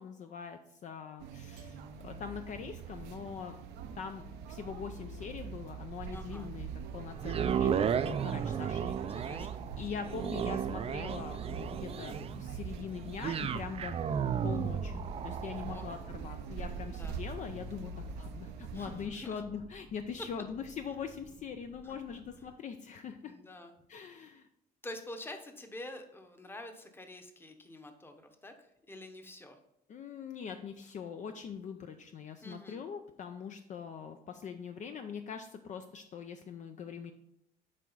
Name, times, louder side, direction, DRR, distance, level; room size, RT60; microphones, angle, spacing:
voice 1, 0.0-3.6 4.0-9.0 9.8-14.0 14.4-23.3 23.9-24.5 29.9-37.1, left 7 dB, 45° left, 7 dB, 0.5 m, -42 dB
sound 1, 1.2-19.1, right 5 dB, 90° right, 0.7 m, -44 dB
voice 2, 6.1-6.5 8.3-8.7 9.1-9.6 15.5-15.8 16.8-17.1 18.7-19.4 21.8-22.0 23.2-23.7 24.1-24.3 24.8-29.6 32.4-32.8, left 1 dB, 15° left, 6 dB, 0.9 m, -48 dB
sound 2, 7.2-21.4 21.9-22.0, right 8 dB, 35° right, 0.4 m, -35 dB
7.5 x 4.6 x 4.0 m, 0.79 s
cardioid pair, 110°, 17 cm